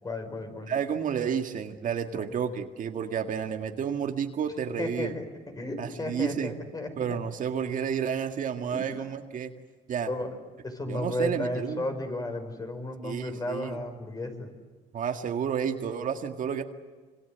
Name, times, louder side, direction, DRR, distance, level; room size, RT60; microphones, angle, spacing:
voice 1, 0.0-0.7 2.1-2.3 4.8-5.3 5.6-7.1 8.7-9.0 10.1-10.4 10.6-14.5, left 2 dB, 20° left, 6 dB, 5.6 m, -34 dB
voice 2, 0.7-5.1 5.8-6.5 7.0-9.5 9.9-10.1 10.9-11.8 13.0-13.8 14.9-16.6, right 7 dB, 50° right, 6 dB, 1.9 m, -31 dB
26.5 x 26.0 x 8.2 m, 1.4 s
cardioid pair, 110°, 17 cm